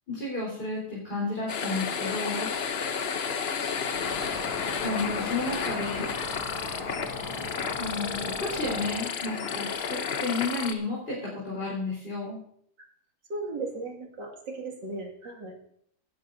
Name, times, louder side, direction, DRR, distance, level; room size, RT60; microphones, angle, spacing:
voice 1, 0.1-2.8 4.8-6.1 7.8-12.4, left 2 dB, 25° left, -6 dB, 4.7 m, -32 dB
sound 1, 1.5-10.7, left 6 dB, 60° left, 0.6 m, -32 dB
sound 2, 3.9-9.0, left 3 dB, 90° left, 2.5 m, -37 dB
voice 2, 13.3-15.5, right 3 dB, 60° right, 0 dB, 2.9 m, -36 dB
16.5 x 12.5 x 2.7 m, 0.67 s
omnidirectional pair, 2.2 m